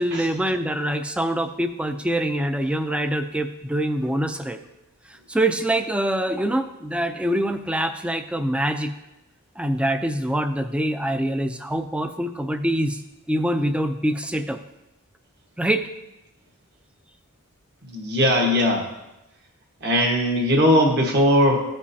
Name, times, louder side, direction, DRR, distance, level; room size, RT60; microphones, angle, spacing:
voice 1, 0.0-4.6 5.1-8.9 9.6-13.0 13.3-14.6 15.6-15.9, right 1 dB, 5° right, 8 dB, 0.3 m, -24 dB
voice 2, 17.9-18.8 19.8-21.6, equal, 50° right, 0 dB, 1.3 m, -19 dB
14.0 x 5.2 x 2.7 m, 0.96 s
head